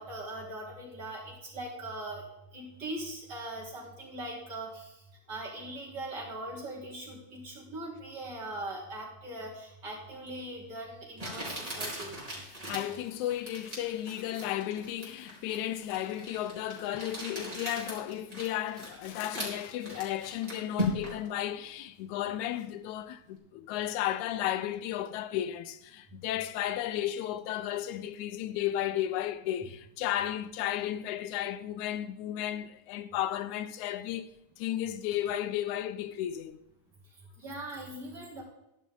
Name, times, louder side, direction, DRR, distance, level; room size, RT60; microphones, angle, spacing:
voice 1, 0.0-2.2 2.5-4.9 5.3-12.2 37.4-38.4, right 1 dB, 35° right, 4.2 m, -40 dB
Crumpling crinkling, 10.3-10.4 11.2-21.3, equal, 10° right, 4.0 m, -39 dB
voice 2, 12.4-34.3 34.6-36.6, left 12 dB, 85° left, 2.1 m, -34 dB
13.5 x 11.5 x 3.8 m
omnidirectional pair, 3.3 m